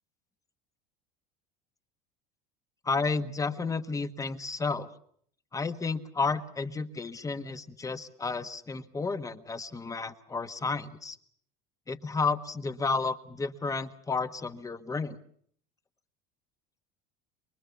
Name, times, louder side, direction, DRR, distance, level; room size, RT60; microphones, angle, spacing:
voice 1, 2.8-4.9 5.5-11.2 11.9-15.2, left 4 dB, 15° left, 10 dB, 1.5 m, -32 dB
24.5 x 22.5 x 7.1 m, 0.62 s
supercardioid pair, 120°, 20 cm